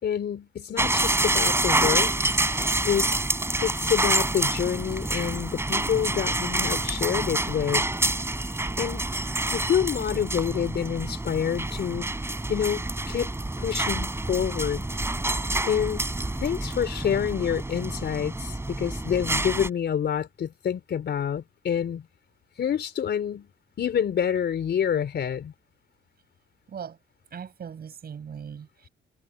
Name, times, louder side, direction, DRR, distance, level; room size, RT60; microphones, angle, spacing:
voice 1, 0.0-2.2 2.8-3.1 3.6-7.8 8.8-9.1 9.5-12.1 12.5-14.9 15.7-16.1 16.4-22.1 22.6-23.5 23.8-25.5, left 8 dB, 60° left, 4.0 m, -27 dB
sound 1, 0.8-19.7, right 2 dB, 10° right, 3.9 m, -27 dB
voice 2, 26.7-27.0 27.3-28.9, right 7 dB, 50° right, 7.1 m, -39 dB
cardioid pair, 90°, 20 cm